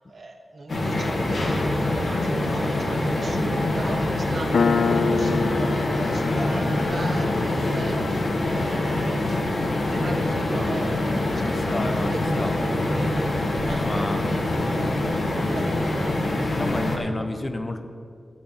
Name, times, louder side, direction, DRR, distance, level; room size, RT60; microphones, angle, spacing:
voice 1, 0.1-9.2 9.9-11.8 12.1-16.2, right 2 dB, 50° right, 2 dB, 1.2 m, -38 dB
sound 1, 0.7-17.0, left 1 dB, 55° left, 1.4 m, -24 dB
Piano, 4.5-11.7, left 5 dB, 80° left, 0.3 m, -29 dB
voice 2, 11.4-13.1 13.8-14.2 16.5-17.8, left 2 dB, 25° left, 6 dB, 0.6 m, -32 dB
12.0 x 4.1 x 8.1 m, 2.2 s
wide cardioid pair, 140°, 0 cm